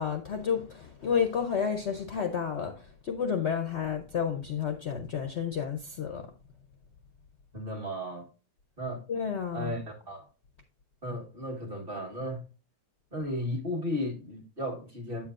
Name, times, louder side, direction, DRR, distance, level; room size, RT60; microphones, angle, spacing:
voice 1, 0.0-6.3 9.1-9.7, left 7 dB, 55° left, 0.8 m, -31 dB
voice 2, 7.5-8.3 8.8-9.1 9.5-10.2 11.0-12.5 13.1-15.3, equal, 35° right, 1.6 m, -35 dB
8.7 x 7.2 x 2.4 m
omnidirectional pair, 1.8 m